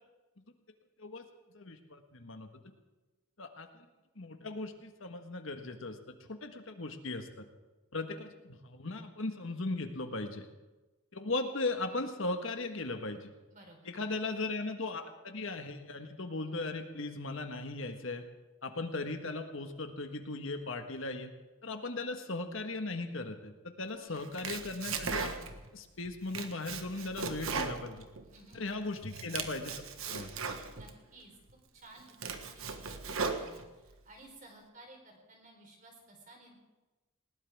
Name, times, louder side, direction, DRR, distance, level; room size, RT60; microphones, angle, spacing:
voice 1, 1.5-2.6 3.4-3.9 4.1-7.4 7.9-10.5 11.1-13.3 13.8-18.2 18.6-21.3 21.6-25.3 25.7-28.0 28.5-30.3, left 2 dB, 70° left, 6 dB, 1.5 m, -38 dB
voice 2, 24.0-24.3 28.2-28.6 30.7-31.3 31.7-36.6, right 2 dB, 35° right, 1 dB, 4.0 m, -56 dB
Domestic sounds home sounds, 24.2-25.7 26.0-28.6 28.9-30.9 31.5-31.6 32.0-33.9, right 5 dB, 80° right, 1.4 m, -38 dB
20.0 x 18.5 x 3.6 m, 1.1 s
head